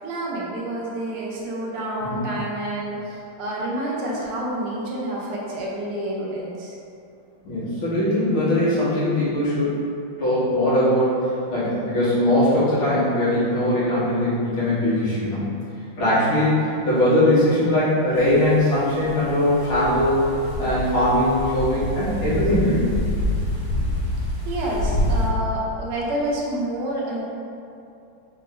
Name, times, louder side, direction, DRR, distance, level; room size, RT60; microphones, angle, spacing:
voice 1, 0.0-6.8 24.5-27.2, right 1 dB, 80° right, -4 dB, 1.8 m, -28 dB
voice 2, 7.4-9.8 10.2-11.2 11.5-15.4 16.0-20.2 20.6-22.9, left 1 dB, 65° left, -11 dB, 2.2 m, -20 dB
sound 1, 18.1-18.5 18.9-25.3, left 1 dB, 90° left, 2.4 m, -27 dB
5.4 x 2.6 x 3.7 m, 2.6 s
omnidirectional pair, 2.4 m